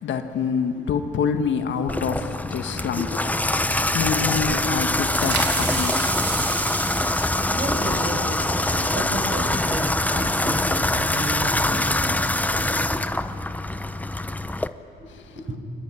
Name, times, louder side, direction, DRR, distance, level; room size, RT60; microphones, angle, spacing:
voice 1, 0.0-3.1 3.9-6.1 15.1-15.3, left 6 dB, 70° left, 6 dB, 1.7 m, -26 dB
Water tap faucet / Bathtub (filling or washing), 1.9-14.7, left 1 dB, 10° left, 0.8 m, -24 dB
voice 2, 2.9-3.3 7.4-12.2 12.6-12.9 15.4-15.5, right 1 dB, 40° right, 3 dB, 6.8 m, -32 dB
sound 1, 4.3-9.8, right 5 dB, 55° right, 3.5 m, -33 dB
24.5 x 23.0 x 9.8 m, 2.9 s
cardioid pair, 90°, 20 cm